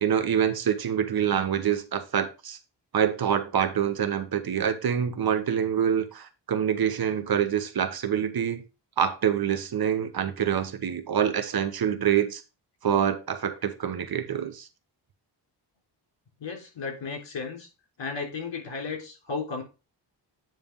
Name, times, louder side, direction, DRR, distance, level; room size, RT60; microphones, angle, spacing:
voice 1, 0.0-2.6 2.9-8.6 9.0-12.4 12.8-14.7, right 8 dB, 55° right, 1.0 m, -26 dB
voice 2, 16.4-17.7 18.0-19.6, left 4 dB, 75° left, 3.8 m, -34 dB
9.1 x 3.3 x 5.2 m
wide cardioid pair, 115°, 43 cm